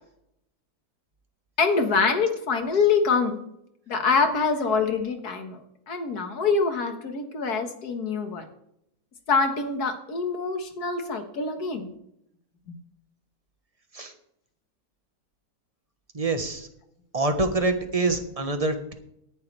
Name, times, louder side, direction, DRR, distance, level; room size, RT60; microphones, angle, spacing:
voice 1, 1.6-3.4 3.9-5.6 5.9-8.4 9.3-11.9 12.7-12.8, left 4 dB, 75° left, 6 dB, 2.1 m, -25 dB
voice 2, 16.1-16.7 17.1-18.9, right 2 dB, 25° right, 6 dB, 1.2 m, -25 dB
17.5 x 10.5 x 3.4 m, 0.76 s
omnidirectional pair, 1.7 m